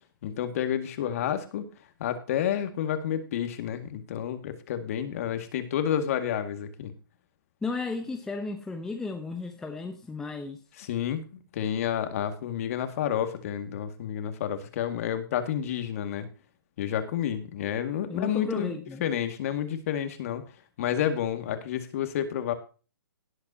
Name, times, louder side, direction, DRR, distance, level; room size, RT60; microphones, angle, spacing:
voice 1, 0.2-1.7 2.0-6.9 10.8-16.3 16.8-18.7 19.0-20.4 20.8-22.5, left 9 dB, 40° left, 8 dB, 2.1 m, -30 dB
voice 2, 7.6-10.6 18.1-19.0, left 3 dB, 5° left, 4 dB, 0.9 m, -34 dB
18.5 x 8.0 x 2.9 m, 0.34 s
hypercardioid pair, 160°, 12 cm